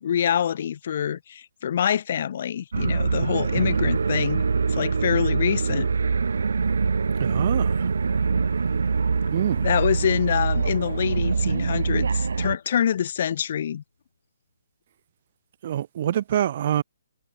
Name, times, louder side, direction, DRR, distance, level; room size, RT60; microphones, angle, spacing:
voice 1, 0.0-4.4 4.7-5.9 9.6-13.8, left 9 dB, 40° left, 0.4 m, -25 dB
sound 1, 2.7-12.6, right 5 dB, 80° right, 2.1 m, -24 dB
voice 2, 7.2-7.9 9.3-9.7 15.6-16.8, right 11 dB, 35° right, 0.6 m, -26 dB
sound 2, 10.5-13.5, left 5 dB, 80° left, 4.2 m, -49 dB
hypercardioid pair, 175°, 0 cm